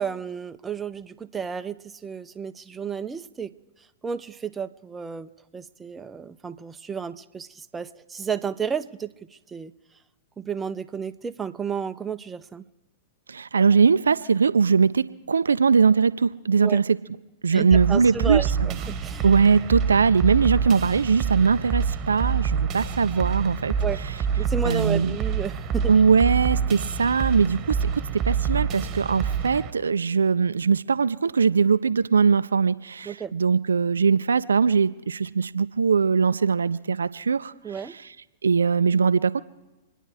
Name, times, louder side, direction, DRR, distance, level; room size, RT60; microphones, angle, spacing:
voice 1, 0.0-3.5 4.0-9.7 10.4-12.6 16.6-16.8 17.5-19.2 23.8-24.0 24.4-25.9 33.1-33.3 37.6-38.0, right 7 dB, 15° right, 9 dB, 0.7 m, -32 dB
voice 2, 13.3-17.0 17.4-18.5 19.2-23.8 24.6-25.2 25.9-37.5 38.4-39.4, right 5 dB, 80° right, 13 dB, 0.5 m, -21 dB
sound 1, 17.7-29.7, right 7 dB, 30° right, 1.4 m, -27 dB
26.0 x 10.0 x 4.9 m, 1.1 s
figure-of-eight pair, 105°, 0 cm